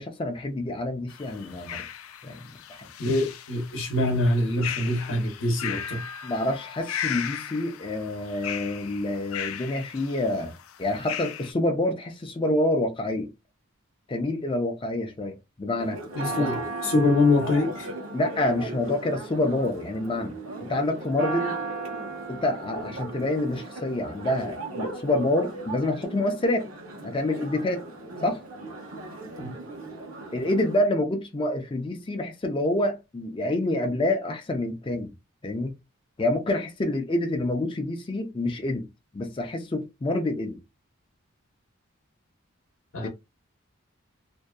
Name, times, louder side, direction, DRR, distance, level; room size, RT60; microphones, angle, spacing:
voice 1, 0.0-1.8 2.2-2.9 6.2-10.5 10.8-13.3 14.1-16.0 16.4-16.5 18.1-21.6 22.3-26.7 27.0-27.9 28.2-28.4 30.3-35.1 35.4-35.7 36.2-38.9 39.1-40.6 43.0-43.1, left 1 dB, 25° left, 0.4 m, -27 dB
sound 1, 1.1-11.5, left 9 dB, 90° left, 0.4 m, -37 dB
voice 2, 3.0-6.0 16.1-17.9 29.4-29.5 42.9-43.1, left 2 dB, 65° left, 0.7 m, -24 dB
Church bell, 15.8-30.8, right 2 dB, 80° right, 1.0 m, -36 dB
2.6 x 2.1 x 2.2 m
head